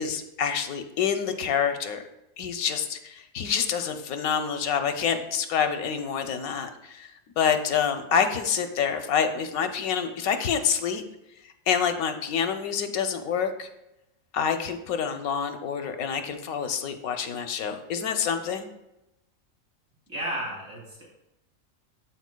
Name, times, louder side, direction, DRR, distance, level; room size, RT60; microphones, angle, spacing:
voice 1, 0.0-2.0 2.4-11.0 11.7-13.7 14.3-18.7, left 7 dB, 85° left, 7 dB, 1.1 m, -27 dB
voice 2, 20.1-21.0, right 1 dB, 65° right, -6 dB, 3.0 m, -33 dB
12.5 x 4.3 x 2.2 m, 0.90 s
omnidirectional pair, 1.5 m